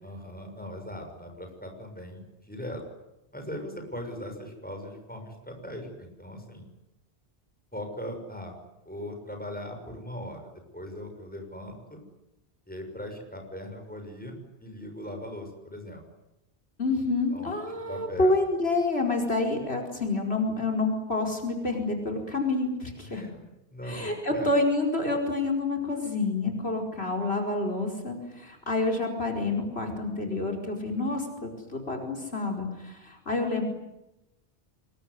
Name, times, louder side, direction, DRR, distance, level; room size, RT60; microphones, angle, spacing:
voice 1, 0.0-2.8 3.3-6.7 7.7-8.5 8.8-12.0 12.7-16.0 17.3-17.5 17.9-18.3 23.0-23.3 23.7-24.5, equal, 10° left, 4 dB, 6.3 m, -39 dB
voice 2, 16.8-23.3 23.9-33.6, left 2 dB, 70° left, 2 dB, 5.1 m, -28 dB
25.5 x 22.5 x 9.7 m, 0.92 s
omnidirectional pair, 1.1 m